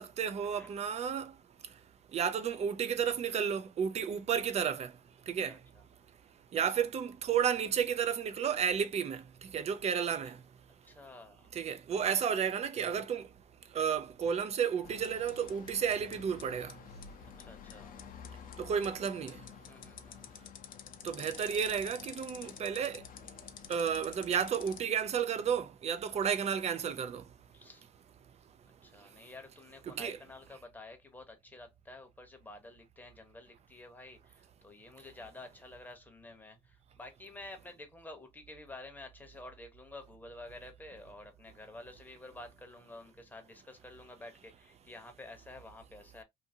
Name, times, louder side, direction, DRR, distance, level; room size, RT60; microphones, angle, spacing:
voice 1, 0.0-1.3 2.1-4.9 5.3-5.6 6.5-10.4 11.5-13.3 13.7-16.7 18.6-19.4 21.0-23.0 23.7-27.2 29.9-30.2, right 7 dB, 40° right, 0.5 m, -32 dB
voice 2, 5.5-5.8 10.2-10.3 10.8-11.5 17.2-17.9 19.7-20.3 26.1-26.2 27.5-27.8 28.6-46.2, left 2 dB, 10° left, 0.8 m, -50 dB
sound 1, 14.8-24.8, left 8 dB, 55° left, 0.6 m, -49 dB
2.6 x 2.6 x 2.7 m
cardioid pair, 110°, 17 cm